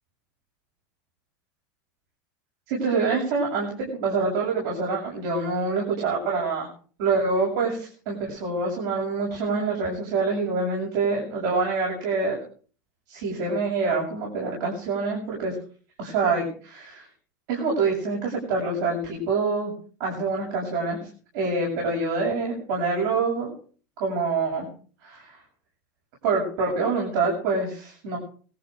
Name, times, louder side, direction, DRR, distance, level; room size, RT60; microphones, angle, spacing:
voice 1, 2.7-6.7 7.0-12.4 13.1-15.5 16.0-17.1 17.5-19.7 20.0-21.0 21.3-23.5 24.0-24.7 25.0-25.4 26.2-28.2, right 4 dB, 75° right, -2 dB, 8.0 m, -26 dB
19.0 x 14.5 x 4.9 m, 0.42 s
supercardioid pair, 120°, 9 cm